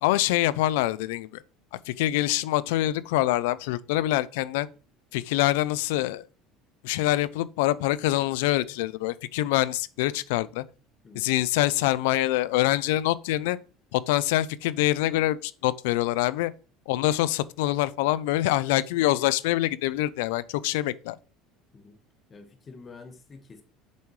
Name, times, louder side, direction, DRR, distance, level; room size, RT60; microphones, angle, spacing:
voice 1, 0.0-1.4 1.9-4.7 5.1-6.2 6.8-10.6 11.1-13.6 13.9-16.5 16.9-21.2, left 15 dB, 90° left, 0.5 m, -25 dB
voice 2, 22.3-23.6, left 4 dB, 25° left, 1.6 m, -47 dB
8.4 x 7.0 x 3.2 m
cardioid pair, 140°, 0 cm